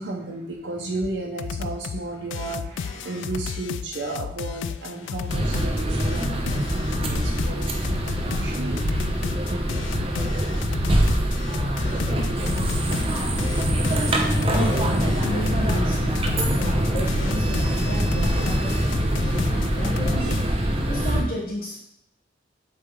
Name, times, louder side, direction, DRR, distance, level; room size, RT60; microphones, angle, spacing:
voice 1, 0.0-8.8, right 2 dB, 75° right, -2 dB, 1.0 m, -33 dB
sound 1, 1.0-1.1 1.4-2.0 2.3-20.5, left 7 dB, 75° left, 0.3 m, -33 dB
sound 2, 5.3-21.2, right 1 dB, 30° right, 0.8 m, -24 dB
voice 2, 14.5-16.4 16.7-20.4 20.9-21.8, equal, 50° left, -4 dB, 1.0 m, -33 dB
8.0 x 3.3 x 3.8 m, 0.75 s
head